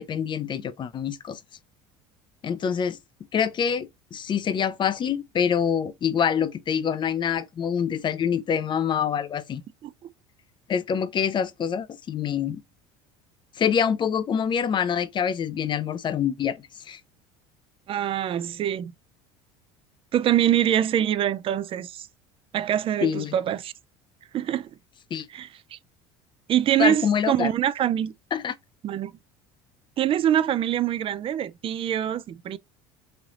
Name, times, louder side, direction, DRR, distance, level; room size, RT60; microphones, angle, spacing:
voice 1, 0.0-1.4 2.4-3.0 3.3-9.6 10.7-12.6 13.6-17.0 23.0-23.3 25.1-25.3 26.8-27.5 28.3-28.5, left 7 dB, 35° left, 0.5 m, -26 dB
voice 2, 17.9-18.9 20.1-22.1 22.5-23.7 24.3-24.8 25.3-25.8 26.5-28.1 28.8-29.1 30.0-32.6, right 11 dB, 40° right, 0.4 m, -24 dB
3.2 x 2.8 x 3.7 m
supercardioid pair, 95°, 14 cm